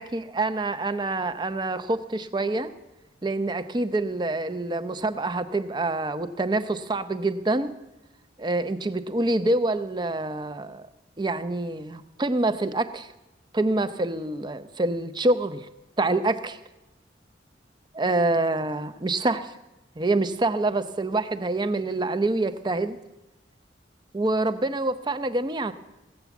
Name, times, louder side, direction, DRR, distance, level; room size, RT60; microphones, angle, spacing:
voice 1, 0.0-2.7 3.2-7.8 8.4-10.8 11.2-13.1 13.5-15.7 16.0-16.6 17.9-19.5 20.0-23.0 24.1-25.7, right 2 dB, 25° right, 11 dB, 0.6 m, -26 dB
16.0 x 8.2 x 7.0 m, 1.0 s
head